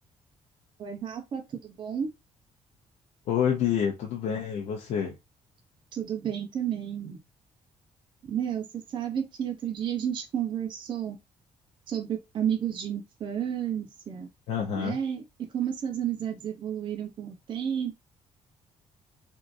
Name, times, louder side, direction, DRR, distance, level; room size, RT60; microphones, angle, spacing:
voice 1, 0.8-2.1 5.9-7.2 8.3-8.6 8.9-11.2 11.9-14.3 14.8-15.2 15.5-18.0, right 9 dB, 45° right, 0.6 m, -31 dB
voice 2, 3.3-5.2 14.5-15.0, left 8 dB, 85° left, 0.6 m, -28 dB
3.6 x 2.5 x 2.5 m
cardioid pair, 170°, 11 cm